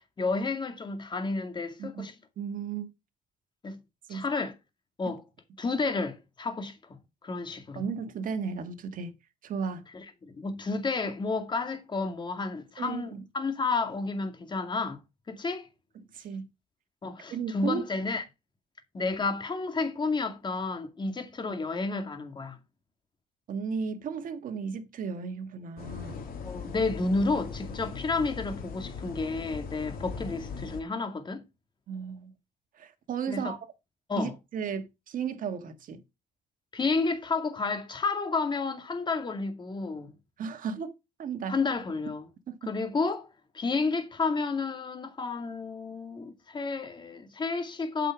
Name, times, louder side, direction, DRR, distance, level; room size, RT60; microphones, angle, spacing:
voice 1, 0.0-2.1 3.6-3.8 4.1-4.5 5.0-5.2 5.6-7.0 7.2-7.8 9.9-15.0 15.3-15.7 17.0-18.2 18.9-22.6 26.4-31.4 33.3-33.6 34.1-34.3 36.7-40.1 41.5-42.3 42.6-43.3 43.5-48.1, left 3 dB, 25° left, 2.2 m, -31 dB
voice 2, 2.4-2.9 4.1-4.2 7.8-9.1 9.4-9.9 12.8-13.2 16.1-16.5 17.3-17.9 21.0-21.2 23.5-26.2 31.9-32.3 32.8-33.6 34.2-36.0 40.4-40.9 41.2-41.6 42.5-42.7, right 6 dB, 55° right, 1.7 m, -34 dB
sound 1, 25.8-30.8, left 5 dB, 60° left, 2.6 m, -39 dB
8.3 x 5.3 x 5.9 m
cardioid pair, 110°, 17 cm